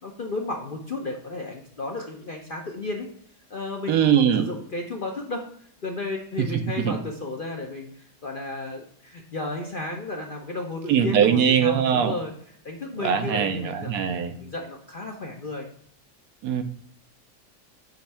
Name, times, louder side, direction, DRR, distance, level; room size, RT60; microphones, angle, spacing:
voice 1, 0.0-3.1 3.5-5.5 5.8-12.3 12.6-15.7, left 2 dB, 45° left, 1 dB, 0.7 m, -33 dB
voice 2, 3.9-4.5 6.4-6.9 10.9-12.2 13.0-14.4 16.4-16.6, right 8 dB, 75° right, 7 dB, 1.2 m, -21 dB
8.0 x 3.2 x 5.6 m, 0.64 s
omnidirectional pair, 1.7 m